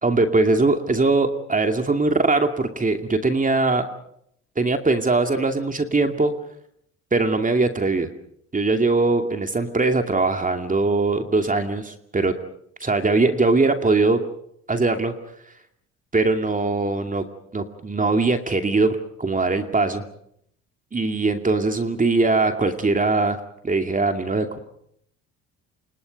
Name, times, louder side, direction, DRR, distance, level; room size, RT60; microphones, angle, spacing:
voice 1, 0.0-3.9 4.6-6.3 7.1-8.1 8.5-12.3 12.8-14.2 14.7-15.1 16.1-17.2 17.5-20.0 20.9-23.4 23.6-24.6, right 3 dB, 25° right, 6 dB, 2.5 m, -21 dB
29.0 x 27.0 x 5.4 m, 0.71 s
hypercardioid pair, 60°, 33 cm